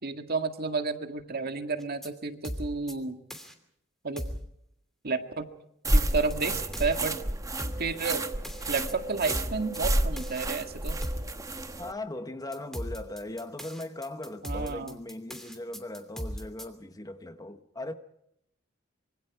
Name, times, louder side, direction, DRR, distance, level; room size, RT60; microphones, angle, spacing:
voice 1, 0.0-3.2 4.0-4.3 5.0-5.5 5.9-7.2 7.6-8.2 8.7-11.0 14.4-15.0, right 4 dB, 50° right, 1.9 m, -31 dB
sound 1, 1.8-2.1 2.4-2.9 3.3-3.5 4.2-4.5 5.9-6.3 6.7-7.0 7.6-7.9 8.4-8.9 9.3-9.8 10.2-10.4 11.0-11.3 12.5-16.6, equal, ahead, 2.8 m, -37 dB
sound 2, 5.8-11.9, right 1 dB, 15° right, 1.2 m, -30 dB
voice 2, 11.8-17.9, left 1 dB, 20° left, 1.1 m, -39 dB
25.5 x 24.5 x 4.8 m
head